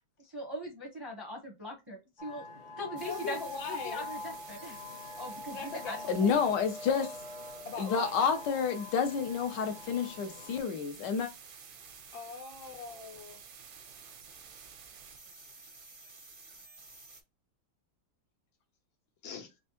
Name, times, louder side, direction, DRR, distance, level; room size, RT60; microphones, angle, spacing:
voice 1, 0.3-2.5 2.8-3.4 3.7-4.8 5.2-6.0, equal, 20° right, 0.6 m, -40 dB
sound 1, 2.2-10.6, left 2 dB, 40° left, 0.9 m, -44 dB
voice 2, 3.0-4.1 5.5-6.3 7.6-8.1 12.1-13.4 19.2-19.5, left 5 dB, 85° left, 1.8 m, -41 dB
sound 2, 3.0-17.2, right 6 dB, 85° right, 1.8 m, -51 dB
voice 3, 6.1-7.2 7.8-11.3, left 6 dB, 70° left, 1.3 m, -29 dB
4.4 x 3.2 x 2.9 m
omnidirectional pair, 2.1 m